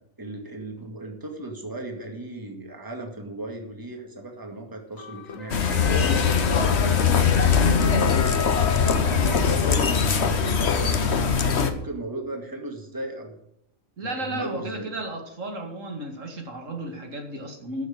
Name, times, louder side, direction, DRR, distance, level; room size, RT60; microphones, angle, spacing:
voice 1, 0.2-8.5 8.9-13.4 14.0-14.9, right 2 dB, 15° right, 2 dB, 2.1 m, -36 dB
sound 1, 4.9-9.8, left 6 dB, 80° left, 1.6 m, -35 dB
sound 2, 5.5-11.7, left 6 dB, 55° left, 1.3 m, -21 dB
voice 2, 14.0-17.9, right 1 dB, 70° right, 3 dB, 2.5 m, -33 dB
13.0 x 6.4 x 8.8 m, 0.74 s
omnidirectional pair, 1.4 m